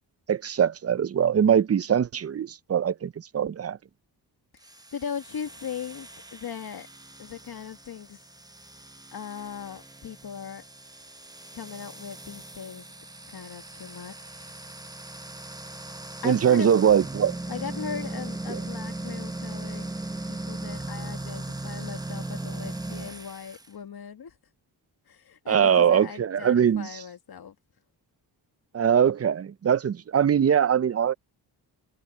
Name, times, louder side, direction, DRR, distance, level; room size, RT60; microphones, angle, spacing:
voice 1, 0.3-3.8 16.2-17.4 18.5-18.6 25.5-26.9 28.7-31.1, right 8 dB, 35° right, 0.5 m, -22 dB
voice 2, 4.5-6.9 7.2-8.2 9.1-10.6 11.5-12.9 13.3-14.5 16.2-16.7 17.5-20.0 20.3-24.4 25.1-27.6, left 7 dB, 60° left, 1.8 m, -39 dB
sound 1, 4.6-23.7, right 2 dB, 10° right, 0.9 m, -38 dB
cardioid pair, 75°, 42 cm